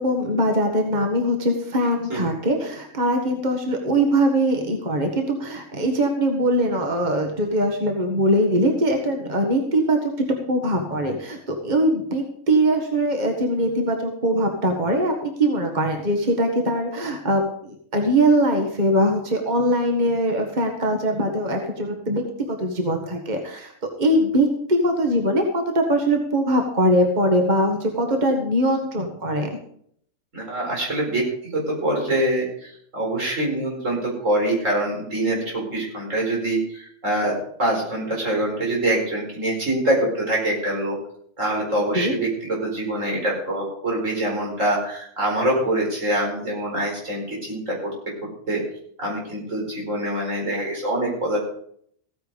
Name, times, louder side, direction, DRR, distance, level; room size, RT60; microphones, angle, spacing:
voice 1, 0.0-22.2 22.5-23.7 24.0-29.5 41.9-42.1, right 1 dB, 35° right, 3 dB, 1.8 m, -22 dB
voice 2, 30.3-41.0 41.4-47.9 48.2-48.6 49.0-51.4, right 1 dB, 85° right, -1 dB, 4.9 m, -24 dB
16.0 x 9.2 x 5.2 m, 0.65 s
omnidirectional pair, 1.3 m